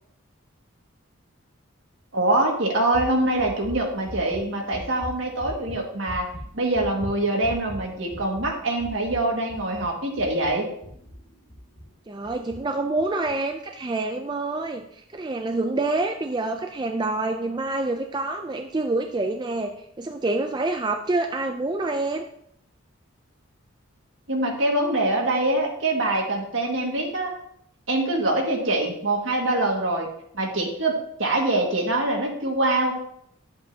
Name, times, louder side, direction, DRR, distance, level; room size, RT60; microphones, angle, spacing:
voice 1, 2.1-6.3 6.5-10.7 24.3-27.3 27.9-30.1 30.3-33.0, right 2 dB, 65° right, 0 dB, 1.9 m, -24 dB
sound 1, 2.9-11.9 12.2-12.6 13.0-13.3, equal, 45° left, 1.7 m, -40 dB
voice 2, 12.1-22.2, right 2 dB, 20° right, 5 dB, 0.4 m, -27 dB
10.5 x 7.6 x 2.8 m, 0.72 s
head